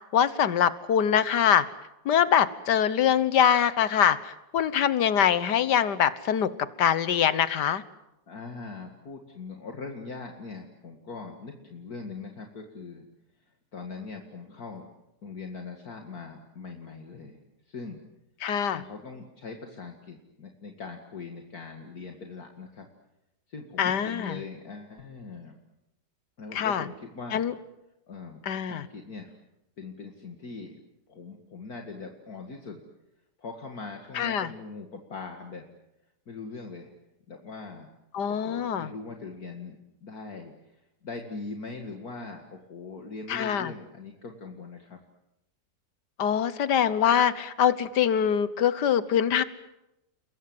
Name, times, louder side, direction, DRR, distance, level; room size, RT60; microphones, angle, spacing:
voice 1, 0.1-1.7 2.1-7.8 18.4-18.8 23.8-24.4 26.5-26.9 27.3-27.5 28.4-28.8 34.2-34.5 38.1-38.9 43.3-43.7 46.2-49.4, left 9 dB, 75° left, 15 dB, 1.7 m, -24 dB
voice 2, 8.3-13.0 13.7-14.8 15.2-17.4 17.7-18.0 18.7-22.9 23.5-25.6 26.4-27.4 28.1-29.3 29.8-30.8 31.1-32.8 33.4-35.7 36.3-36.9 37.3-37.9 38.3-40.5 41.0-45.0, left 4 dB, 60° left, 3 dB, 2.5 m, -41 dB
30.0 x 22.0 x 7.9 m, 0.92 s
omnidirectional pair, 1.8 m